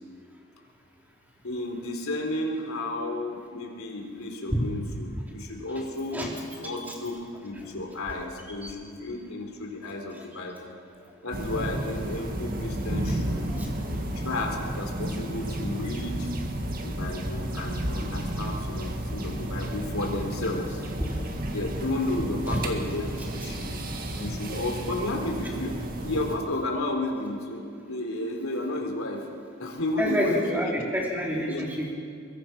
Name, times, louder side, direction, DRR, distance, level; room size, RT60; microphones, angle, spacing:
voice 1, 1.4-6.3 6.6-10.7 11.2-13.5 14.1-16.3 16.8-20.8 21.5-23.8 24.2-25.8 26.0-27.6 27.9-29.3 29.6-30.8 31.4-31.7, left 2 dB, 85° left, 1 dB, 3.7 m, -32 dB
sound 1, 11.3-26.4, right 1 dB, 40° right, 2.0 m, -32 dB
voice 2, 30.0-31.9, equal, 10° right, -2 dB, 3.5 m, -28 dB
24.0 x 22.0 x 5.9 m, 2.3 s
head